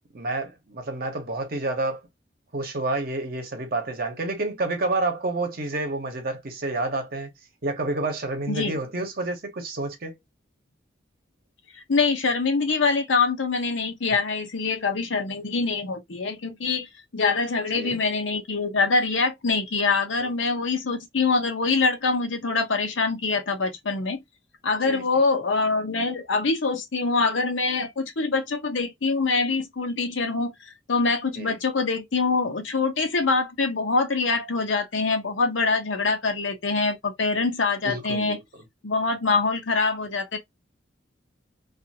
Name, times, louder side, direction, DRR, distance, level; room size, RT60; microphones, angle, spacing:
voice 1, 0.1-2.0 2.5-7.3 7.6-10.2 17.7-18.0 20.2-20.3 24.8-25.0 31.3-31.6 37.8-38.4, right 2 dB, 50° right, 0.9 m, -29 dB
voice 2, 8.5-8.8 11.9-24.2 24.6-30.5 30.9-38.4 38.8-40.4, left 4 dB, 75° left, 0.8 m, -24 dB
2.5 x 2.5 x 2.8 m
head